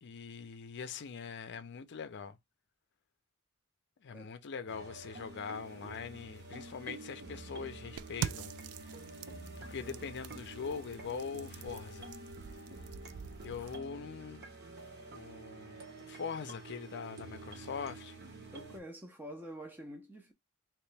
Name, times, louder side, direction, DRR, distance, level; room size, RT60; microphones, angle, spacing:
voice 1, 0.0-2.4 4.0-8.5 9.6-12.1 13.4-14.5 15.1-18.2, left 6 dB, 55° left, 0.5 m, -42 dB
sound 1, 4.7-18.8, right 2 dB, 50° right, 1.0 m, -48 dB
sound 2, 8.0-13.8, right 9 dB, 75° right, 0.3 m, -44 dB
voice 2, 9.8-10.2 13.4-13.7 18.5-20.3, equal, 10° right, 0.6 m, -48 dB
3.0 x 2.9 x 3.3 m
head